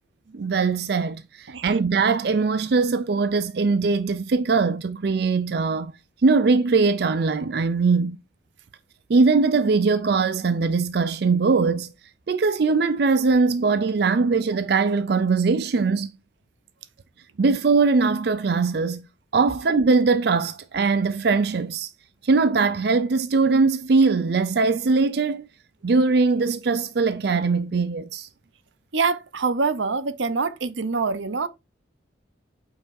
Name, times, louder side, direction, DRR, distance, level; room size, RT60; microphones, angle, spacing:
voice 1, 0.3-5.9 6.2-8.2 9.1-11.9 12.3-16.1 17.4-19.1 19.3-21.9 22.2-25.5 25.8-28.3, right 4 dB, 55° right, 0.4 m, -21 dB
voice 2, 1.5-1.8 28.9-31.5, right 4 dB, 85° right, 0.8 m, -25 dB
9.0 x 5.9 x 2.6 m
head